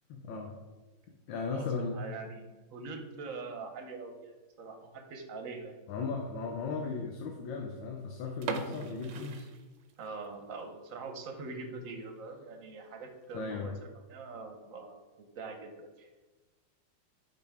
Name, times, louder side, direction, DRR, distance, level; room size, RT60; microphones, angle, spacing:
voice 1, 0.1-0.5 1.3-2.0 5.9-9.5 13.3-13.7, left 4 dB, 80° left, 2 dB, 1.5 m, -36 dB
voice 2, 1.5-5.8 10.0-13.7 14.1-16.3, right 4 dB, 55° right, 5 dB, 1.1 m, -43 dB
sound 1, 8.4-10.3 10.6-10.7 11.2-11.4 11.8-11.9 12.2-12.3 13.0-13.3, right 6 dB, 80° right, 1.3 m, -40 dB
10.5 x 4.0 x 3.5 m, 1.2 s
omnidirectional pair, 2.0 m